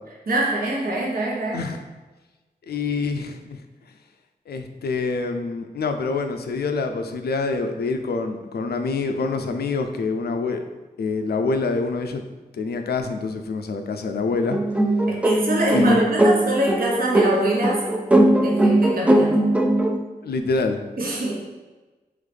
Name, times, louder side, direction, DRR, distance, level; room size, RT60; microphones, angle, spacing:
voice 1, 0.3-1.6 15.1-17.8 18.3-19.4 21.0-21.3, right 1 dB, 65° right, -3 dB, 0.9 m, -24 dB
voice 2, 2.7-3.6 4.5-10.6 11.0-12.2 12.5-14.6 15.7-16.0 20.2-20.8, left 4 dB, 75° left, 6 dB, 0.4 m, -26 dB
sound 1, 14.5-20.0, right 1 dB, 5° right, 0.4 m, -19 dB
3.8 x 3.1 x 3.4 m, 1.2 s
cardioid pair, 55°, 17 cm